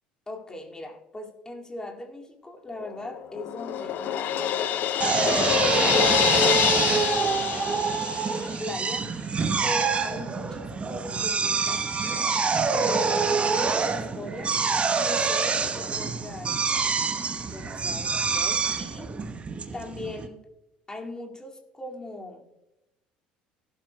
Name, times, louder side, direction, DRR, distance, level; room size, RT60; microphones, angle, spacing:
voice 1, 0.3-8.0 8.6-9.1 9.6-11.9 12.7-14.6 15.0-16.6 17.4-19.1 19.7-20.4 20.9-22.5, left 2 dB, 15° left, 0 dB, 2.3 m, -39 dB
Crash cymbal, 2.8-8.5, left 10 dB, 45° left, 0.7 m, -26 dB
Drill, 5.0-20.3, right 5 dB, 25° right, 1.0 m, -26 dB
18.5 x 12.0 x 2.3 m, 0.95 s
figure-of-eight pair, 60°, 4 cm